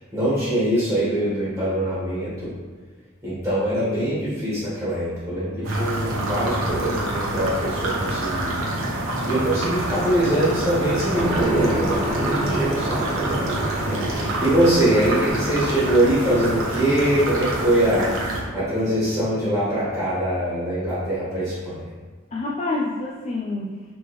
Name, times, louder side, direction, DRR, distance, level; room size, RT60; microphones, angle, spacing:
voice 1, 0.1-2.5 3.2-8.5 9.2-21.9, right 1 dB, 10° right, -11 dB, 1.4 m, -23 dB
sound 1, 5.6-18.4, right 1 dB, 85° right, 0.9 m, -27 dB
sound 2, 11.1-21.3, right 1 dB, 30° right, 0.6 m, -31 dB
voice 2, 22.3-23.8, left 2 dB, 30° left, -3 dB, 0.3 m, -28 dB
5.0 x 3.3 x 3.0 m, 1.4 s
head